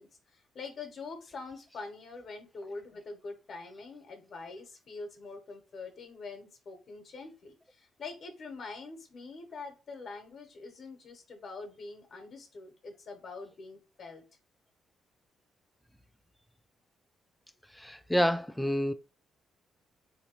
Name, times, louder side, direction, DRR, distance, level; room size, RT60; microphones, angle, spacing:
voice 1, 0.0-14.2, left 3 dB, 55° left, 0.8 m, -44 dB
voice 2, 17.7-18.9, equal, 5° left, 0.3 m, -28 dB
3.2 x 2.6 x 2.9 m
cardioid pair, 90°, 0 cm